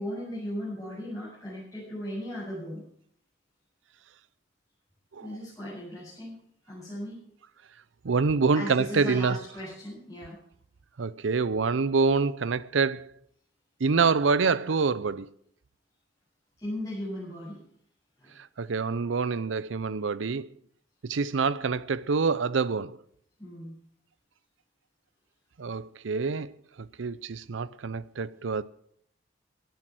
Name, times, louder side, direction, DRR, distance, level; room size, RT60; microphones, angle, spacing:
voice 1, 0.0-2.8 5.2-6.4 6.6-7.2 8.5-10.3 16.6-17.6 18.2-18.3 23.4-23.7, equal, 15° left, 7.9 m, -37 dB
voice 2, 8.0-9.4 11.0-13.1 13.8-15.3 18.6-20.5 21.0-23.0 25.6-26.5 26.8-28.6, right 4 dB, 80° right, 0.6 m, -26 dB
17.0 x 10.0 x 6.2 m
head